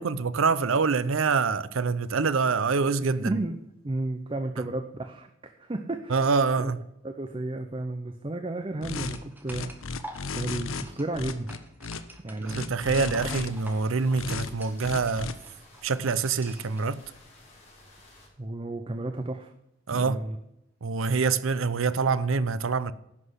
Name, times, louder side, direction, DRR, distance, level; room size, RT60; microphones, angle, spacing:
voice 1, 0.0-3.3 4.6-4.7 6.1-6.8 12.4-15.3 15.8-17.0 19.9-20.2 20.8-22.9, right 4 dB, 75° right, 0.6 m, -25 dB
voice 2, 3.2-3.6 3.8-6.2 6.6-6.7 7.0-9.7 10.3-11.5 12.2-12.7 18.4-19.5 19.9-20.4, right 2 dB, 25° right, 0.6 m, -32 dB
sound 1, 8.8-9.2 9.5-10.8 11.1-12.0 12.5-13.5 14.1-14.5 14.8-15.3, left 4 dB, 75° left, 0.8 m, -34 dB
sound 2, 9.1-16.9, right 1 dB, 10° right, 1.2 m, -48 dB
sound 3, 13.1-18.3, left 2 dB, 30° left, 4.2 m, -53 dB
10.5 x 6.0 x 8.0 m
head